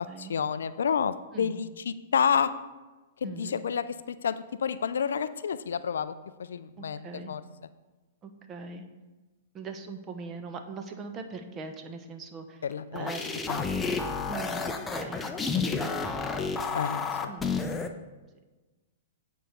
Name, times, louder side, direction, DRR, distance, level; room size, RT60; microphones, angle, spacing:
voice 1, 0.2-2.5 3.2-3.9 4.2-6.1 6.4-7.4 12.6-13.1 13.5-13.6 16.7-17.3, left 7 dB, 70° left, 14 dB, 0.3 m, -29 dB
voice 2, 1.3-1.6 3.2-3.6 6.8-7.3 8.2-8.9 9.5-12.6 12.9-13.2 14.3-15.3 15.8-16.1 17.3-17.6, right 4 dB, 25° right, 6 dB, 0.9 m, -41 dB
sound 1, 12.7-17.9, left 4 dB, 15° left, 0.6 m, -31 dB
9.2 x 4.7 x 5.3 m, 1.2 s
figure-of-eight pair, 110°, 0 cm